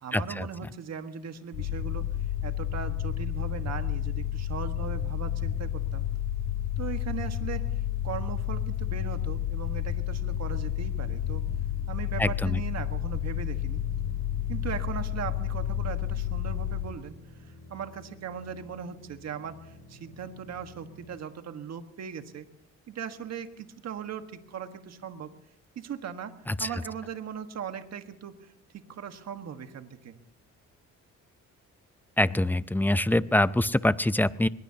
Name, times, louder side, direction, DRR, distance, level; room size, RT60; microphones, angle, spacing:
voice 1, 0.0-2.1 2.4-6.0 6.8-7.8 8.0-11.4 11.9-13.8 14.5-22.5 22.9-25.3 25.7-30.2, right 7 dB, 60° right, 7 dB, 1.6 m, -39 dB
sound 1, 1.5-16.8, left 10 dB, 90° left, 2.8 m, -31 dB
sound 2, 10.2-21.1, left 2 dB, 70° left, 5.7 m, -50 dB
voice 2, 32.2-34.5, left 1 dB, 5° left, 15 dB, 0.5 m, -23 dB
22.5 x 20.5 x 2.9 m, 0.83 s
cardioid pair, 90°, 30 cm